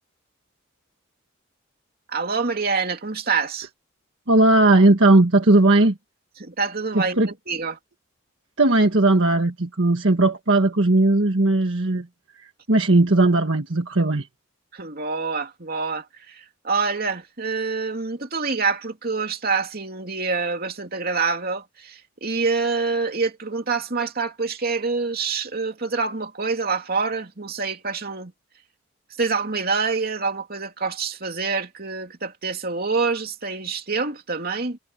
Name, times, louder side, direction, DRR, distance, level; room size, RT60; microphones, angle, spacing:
voice 1, 2.1-3.7 6.4-7.8 14.7-28.3 29.2-34.8, right 4 dB, 50° right, 2.8 m, -26 dB
voice 2, 4.3-6.0 6.9-7.3 8.6-12.1 12.4-14.3, right 2 dB, 65° right, 1.6 m, -17 dB
head